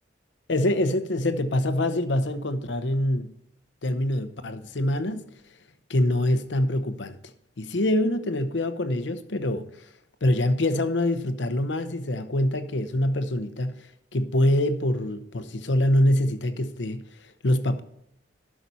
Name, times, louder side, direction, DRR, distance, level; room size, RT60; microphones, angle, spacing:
voice 1, 0.5-3.3 3.8-5.3 5.9-7.2 7.6-9.7 10.2-13.9 14.1-17.8, left 1 dB, 80° left, 0.8 m, -25 dB
12.5 x 6.0 x 4.1 m
head